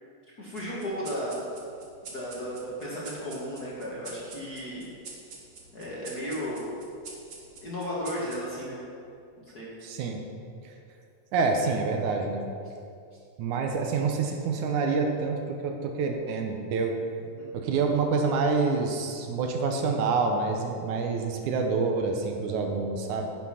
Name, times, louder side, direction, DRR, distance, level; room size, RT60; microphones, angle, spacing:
voice 1, 0.4-1.4 2.0-4.9 5.7-6.6 7.6-8.8 9.4-9.7 17.4-17.5, equal, 45° left, -6 dB, 1.5 m, -34 dB
sound 1, 0.6-9.4, right 3 dB, 60° right, 0.9 m, -47 dB
voice 2, 9.8-10.2 10.6-10.7 11.3-12.5 13.4-17.0 17.5-23.3, right 4 dB, 75° right, 3 dB, 2.2 m, -27 dB
10.0 x 6.9 x 5.7 m, 2.4 s
omnidirectional pair, 3.6 m